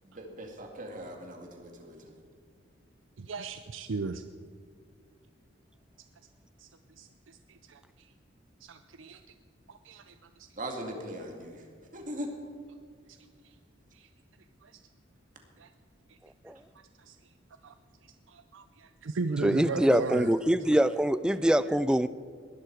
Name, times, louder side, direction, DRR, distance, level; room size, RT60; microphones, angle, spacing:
voice 1, 0.0-2.1 10.6-11.7 11.9-12.3, equal, 45° right, 3 dB, 2.2 m, -40 dB
voice 2, 3.2-4.2 6.6-6.7 7.0-7.4 7.7-7.8 8.6-9.2 9.8-10.5 13.1-13.2 13.9-14.1 14.6-14.7 15.6-15.7 17.1-17.2 17.6-17.7 18.3-20.3, right 4 dB, 85° right, 9 dB, 0.6 m, -36 dB
voice 3, 19.4-22.1, right 1 dB, 5° right, 15 dB, 0.3 m, -24 dB
20.0 x 11.5 x 4.7 m, 2.2 s
head